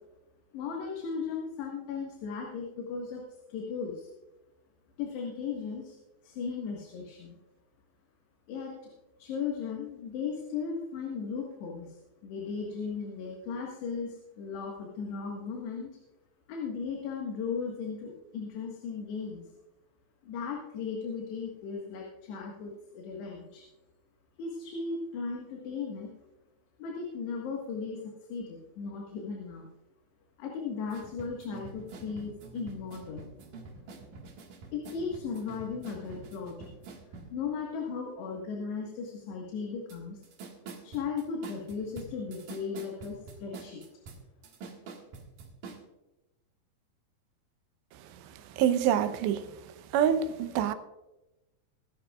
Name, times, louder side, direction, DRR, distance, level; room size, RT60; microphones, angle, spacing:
voice 1, 0.5-3.2 3.5-4.1 5.0-6.0 6.2-7.4 8.5-8.8 9.2-15.9 16.5-19.5 20.2-23.6 24.4-26.1 26.8-28.0 28.3-29.7 30.4-33.3 34.7-36.7 37.2-40.2 40.8-43.8, left 5 dB, 75° left, 3.8 m, -36 dB
sound 1, 30.8-37.4 39.9-40.0 40.2-45.8, right 4 dB, 55° right, 2.9 m, -46 dB
voice 2, 48.6-49.5 49.9-50.7, right 9 dB, 85° right, 3.0 m, -26 dB
22.0 x 11.5 x 2.4 m
omnidirectional pair, 5.0 m